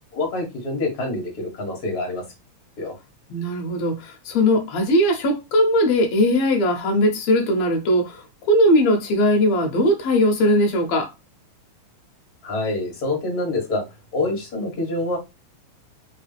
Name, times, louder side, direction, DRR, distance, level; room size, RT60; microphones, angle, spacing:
voice 1, 0.1-2.2 2.8-2.9 12.4-13.8 14.1-15.2, left 2 dB, 35° left, 1.9 m, -26 dB
voice 2, 3.3-11.1, left 1 dB, 65° left, 1.9 m, -19 dB
4.6 x 3.4 x 3.4 m
omnidirectional pair, 3.7 m